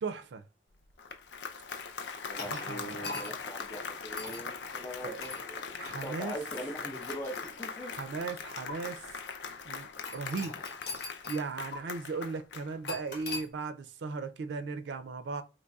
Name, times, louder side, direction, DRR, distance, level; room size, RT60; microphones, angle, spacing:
voice 1, 0.0-0.4 2.5-3.1 5.0-5.2 5.8-6.3 7.8-9.1 9.7-10.6 11.3-15.4, right 4 dB, 85° right, 0.4 m, -37 dB
Applause, 0.8-13.4, left 5 dB, 85° left, 0.4 m, -41 dB
voice 2, 2.3-7.9, equal, 15° left, 0.6 m, -42 dB
sound 1, 2.4-3.5 4.2-4.5 5.2-5.4 5.9-6.1 6.8-7.9 8.7-8.8 10.1-11.5 11.7-11.8 12.9-13.5, left 3 dB, 60° left, 1.0 m, -41 dB
3.9 x 3.0 x 2.3 m
head